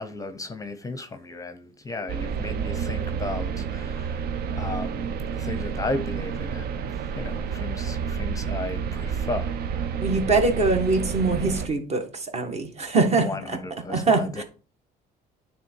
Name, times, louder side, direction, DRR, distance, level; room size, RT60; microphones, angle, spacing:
voice 1, 0.0-4.2 4.5-5.1 5.4-9.6 13.2-14.4, left 2 dB, 20° left, 0.7 m, -34 dB
sound 1, 2.1-11.7, right 6 dB, 70° right, 0.6 m, -30 dB
voice 2, 10.0-13.6 13.9-14.4, right 3 dB, 40° right, 1.5 m, -23 dB
9.3 x 3.4 x 4.5 m
cardioid pair, 110°, 17 cm